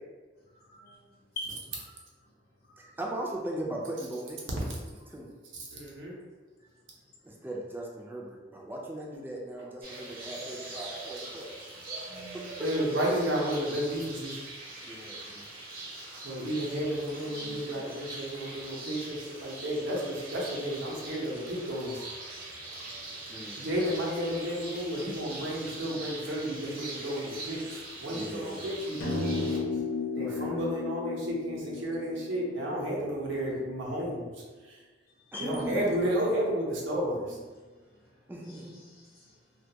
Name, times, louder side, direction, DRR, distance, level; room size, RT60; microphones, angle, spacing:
voice 1, 0.5-1.9 2.6-2.9 6.6-6.7 11.7-12.6 15.1-15.2 17.3-17.8 27.4-27.6 35.3-35.5 38.4-39.3, left 2 dB, 55° left, -5 dB, 0.8 m, -46 dB
voice 2, 2.8-5.3 7.2-11.5 12.3-12.7 14.8-15.5 23.3-23.9 28.0-28.8 30.1-30.8 31.5-32.1 35.3-36.1 37.3-37.4 38.3-38.8, right 1 dB, 10° right, -2 dB, 0.3 m, -39 dB
voice 3, 5.5-6.2 12.6-14.4 16.2-22.1 23.6-29.7 30.2-34.3 34.6-34.8 35.4-37.4, equal, 85° right, -3 dB, 0.7 m, -32 dB
sound 1, 9.8-29.6, right 2 dB, 50° right, 0.6 m, -42 dB
sound 2, 29.0-33.5, left 4 dB, 90° left, 0.4 m, -34 dB
2.2 x 2.2 x 2.7 m, 1.4 s
head